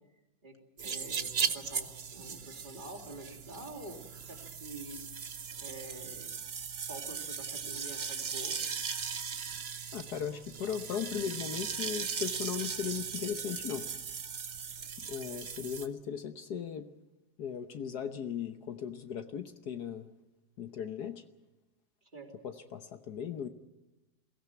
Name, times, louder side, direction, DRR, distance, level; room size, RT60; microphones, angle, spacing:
voice 1, 0.4-4.0 4.2-5.0 5.6-6.3 6.8-8.7 22.1-22.3, right 2 dB, 25° right, 1 dB, 3.4 m, -47 dB
sound 1, 0.8-15.9, right 6 dB, 40° right, 1.0 m, -38 dB
voice 2, 9.9-13.9 15.0-16.9 17.4-20.1 20.6-21.2 22.4-23.5, left 8 dB, 65° left, 8 dB, 1.4 m, -37 dB
22.5 x 17.0 x 9.3 m, 1.0 s
omnidirectional pair, 1.9 m